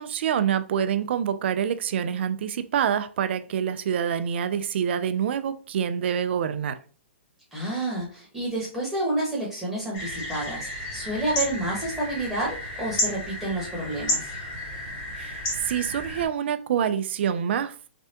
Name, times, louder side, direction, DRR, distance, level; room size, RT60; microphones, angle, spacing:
voice 1, 0.0-6.8 15.2-17.9, right 8 dB, 60° right, 0.3 m, -26 dB
voice 2, 7.5-14.3, right 1 dB, ahead, 1.1 m, -29 dB
sound 1, 9.9-16.2, left 1 dB, 30° left, 1.1 m, -32 dB
3.3 x 2.2 x 2.7 m
hypercardioid pair, 145°, 7 cm